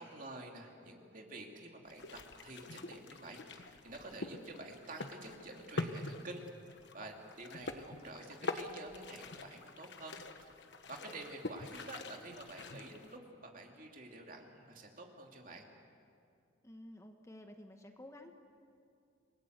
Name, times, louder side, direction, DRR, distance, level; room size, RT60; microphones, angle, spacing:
voice 1, 0.0-6.4 6.9-10.1 10.4-10.6 10.9-15.7, right 2 dB, 40° right, 2 dB, 2.7 m, -49 dB
sound 1, 1.8-13.2, left 2 dB, 60° left, 1.3 m, -45 dB
voice 2, 16.6-18.3, left 1 dB, 15° left, 5 dB, 1.1 m, -52 dB
28.0 x 19.5 x 8.1 m, 2.5 s
head